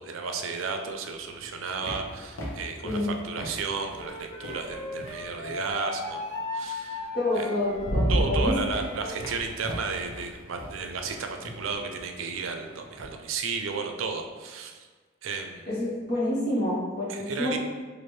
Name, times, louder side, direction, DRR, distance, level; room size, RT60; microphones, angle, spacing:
voice 1, 0.0-6.3 6.5-7.1 7.4-7.5 8.1-14.9 15.2-15.7 17.1-17.6, right 4 dB, 80° right, 5 dB, 0.4 m, -33 dB
sound 1, 1.2-5.7 7.0-7.1 7.5-13.1, equal, 85° left, 0.8 m, -34 dB
Wind instrument woodwind instrument, 4.0-9.3, left 2 dB, 30° left, 1.2 m, -37 dB
voice 2, 7.1-8.5 15.7-17.6, left 1 dB, 50° left, -8 dB, 1.2 m, -28 dB
3.1 x 2.5 x 4.4 m, 1.4 s
head